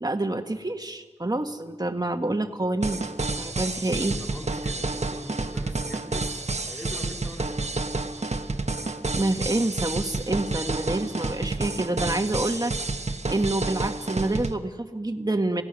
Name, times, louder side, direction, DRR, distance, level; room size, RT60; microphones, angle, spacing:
voice 1, 0.0-3.1 3.4-4.2 9.1-12.7 13.3-15.6, right 2 dB, 35° right, 5 dB, 1.7 m, -27 dB
sound 1, 2.8-14.5, right 3 dB, 75° right, 1.3 m, -30 dB
voice 2, 4.0-7.7, equal, 15° left, -1 dB, 4.9 m, -42 dB
28.5 x 16.5 x 6.4 m, 1.4 s
wide cardioid pair, 50°, 12 cm